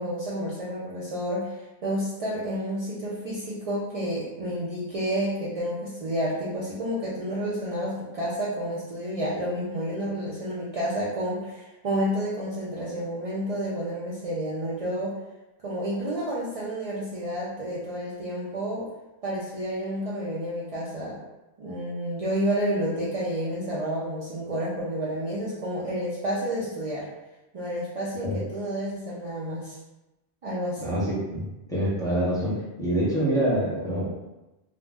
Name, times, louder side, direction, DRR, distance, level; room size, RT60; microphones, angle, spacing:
voice 1, 0.0-15.2 15.6-18.9 19.2-21.2 21.6-27.1 27.5-29.8 30.4-30.8, equal, 65° right, -7 dB, 0.3 m, -30 dB
voice 2, 30.8-34.1, right 1 dB, 5° left, -9 dB, 0.6 m, -26 dB
2.4 x 2.0 x 3.3 m, 1.0 s
omnidirectional pair, 1.2 m